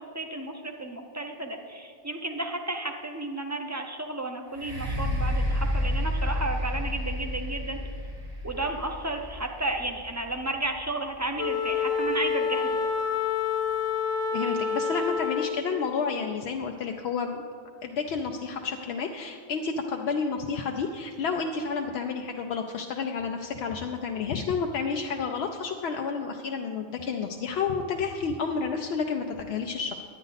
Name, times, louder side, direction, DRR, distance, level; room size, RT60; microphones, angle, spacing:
voice 1, 0.0-7.8 8.4-12.8, right 2 dB, 20° right, 4 dB, 0.6 m, -33 dB
sound 1, 4.5-12.3 12.9-13.0, left 1 dB, 70° right, 2.2 m, -31 dB
Wind instrument woodwind instrument, 11.4-15.7, left 6 dB, 25° left, 0.3 m, -28 dB
voice 2, 14.3-17.4 17.8-30.0, left 5 dB, 80° left, 3 dB, 0.8 m, -30 dB
10.0 x 9.1 x 4.0 m, 2.1 s
omnidirectional pair, 1.1 m